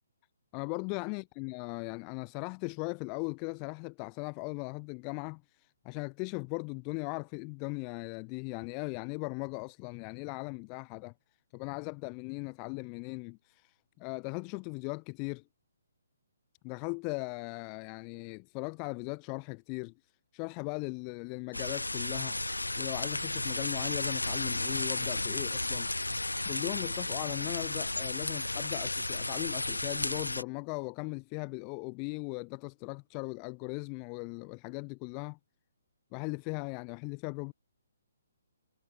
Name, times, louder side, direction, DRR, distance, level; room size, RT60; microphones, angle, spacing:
voice 1, 0.5-11.1 11.5-15.4 16.6-19.9 20.3-22.4 22.8-35.4 36.1-37.5, left 39 dB, 25° left, 1.2 m, -38 dB
sound 1, 21.5-30.4, left 2 dB, 85° left, 0.4 m, -33 dB
figure-of-eight pair, 135°, 0 cm